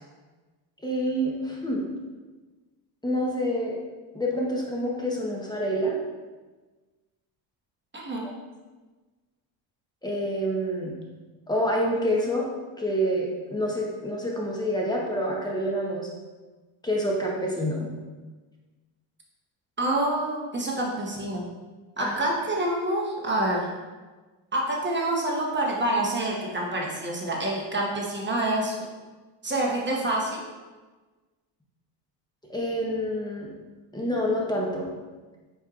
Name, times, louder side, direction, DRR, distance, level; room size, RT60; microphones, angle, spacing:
voice 1, 0.8-1.9 3.0-3.8 4.1-6.0 10.0-10.9 11.5-12.5 12.8-16.1 16.8-17.9 22.0-22.2 32.5-33.5 33.9-34.9, equal, 10° left, -3 dB, 1.1 m, -27 dB
voice 2, 7.9-8.3 19.8-21.4 22.0-23.7 24.5-28.9 29.4-30.5, right 1 dB, 25° right, -2 dB, 1.0 m, -27 dB
4.5 x 4.4 x 2.5 m, 1.3 s
supercardioid pair, 70°, 48 cm